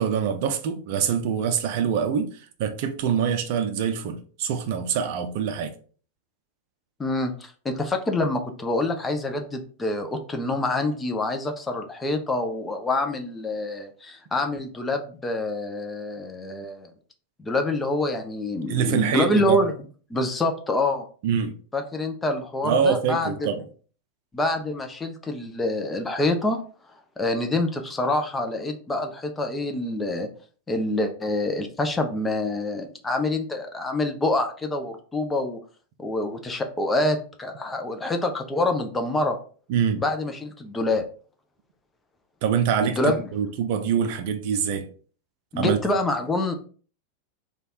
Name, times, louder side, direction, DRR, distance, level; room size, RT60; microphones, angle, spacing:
voice 1, 0.0-5.7 18.7-19.6 21.2-21.6 22.6-23.6 39.7-40.0 42.4-44.9 45.6-45.8, right 7 dB, 50° right, 0.5 m, -25 dB
voice 2, 7.0-16.9 17.4-19.7 20.1-21.0 21.7-23.5 24.3-26.6 27.2-30.3 30.7-35.6 36.0-39.4 40.0-41.0 42.8-43.2 45.5-46.5, left 2 dB, 15° left, 0.6 m, -26 dB
3.2 x 2.4 x 4.2 m
figure-of-eight pair, 90°, 0 cm